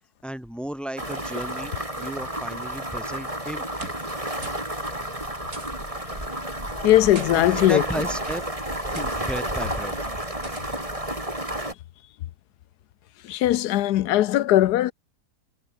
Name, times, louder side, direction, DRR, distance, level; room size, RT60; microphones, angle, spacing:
voice 1, 0.2-1.7 2.0-3.7 7.3-8.4 8.9-9.9, right 1 dB, ahead, 4.9 m, -33 dB
sound 1, 1.0-11.7, right 1 dB, 20° right, 6.1 m, -31 dB
sound 2, 3.8-4.2 4.4-4.7 5.0-5.1 5.5-5.9 6.8-7.3 8.1-8.3 8.9-9.2 10.4-10.8, right 3 dB, 60° right, 4.7 m, -41 dB
voice 2, 6.7-7.8 13.2-14.9, left 13 dB, 85° left, 1.2 m, -19 dB
omnidirectional pair, 1.7 m